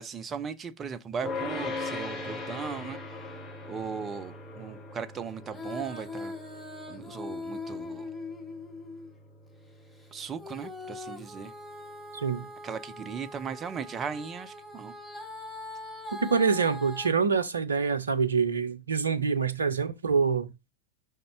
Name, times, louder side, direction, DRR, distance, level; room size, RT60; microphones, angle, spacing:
voice 1, 0.0-3.0 3.7-6.3 6.9-8.1 10.1-11.5 12.6-14.9, right 6 dB, 25° right, 0.6 m, -37 dB
sound 1, 1.2-12.5, left 3 dB, 25° left, 2.3 m, -40 dB
Female singing, 5.4-9.2 10.4-17.1, left 2 dB, ahead, 2.0 m, -41 dB
voice 2, 12.1-12.5 16.2-20.5, right 5 dB, 70° right, 0.6 m, -26 dB
5.3 x 3.6 x 5.6 m
figure-of-eight pair, 90°, 0 cm